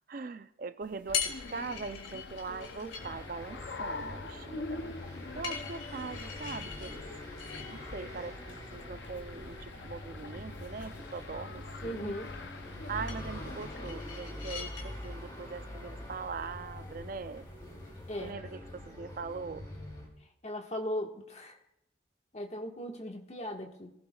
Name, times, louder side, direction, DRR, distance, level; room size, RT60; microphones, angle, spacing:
voice 1, 0.0-5.0 5.4-7.0 7.7-8.4 8.7-12.2 12.9-17.4 18.2-19.7, right 4 dB, 50° right, 12 dB, 0.4 m, -41 dB
sound 1, 0.8-18.3, left 7 dB, 85° left, 2.1 m, -44 dB
sound 2, 1.1-13.9, left 3 dB, 65° left, 0.6 m, -45 dB
sound 3, 3.0-20.1, left 1 dB, 20° left, 3.1 m, -45 dB
voice 2, 11.8-12.3 18.1-18.3 20.4-21.5 22.3-23.9, left 1 dB, 35° left, 2 dB, 1.5 m, -38 dB
19.5 x 15.5 x 2.3 m, 0.82 s
head